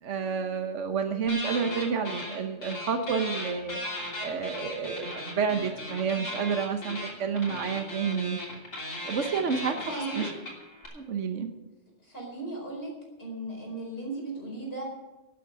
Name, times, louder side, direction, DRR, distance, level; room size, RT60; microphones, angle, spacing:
voice 1, 0.0-3.8 4.2-8.4 9.0-10.3 10.9-11.5, right 6 dB, 75° right, 6 dB, 1.4 m, -30 dB
sound 1, 1.3-2.4 2.6-10.9, left 1 dB, 85° left, 3.5 m, -37 dB
voice 2, 9.7-10.4 12.1-12.9 13.2-14.8, right 2 dB, 50° left, -1 dB, 4.9 m, -36 dB
12.5 x 8.5 x 7.7 m, 1.1 s
omnidirectional pair, 1.3 m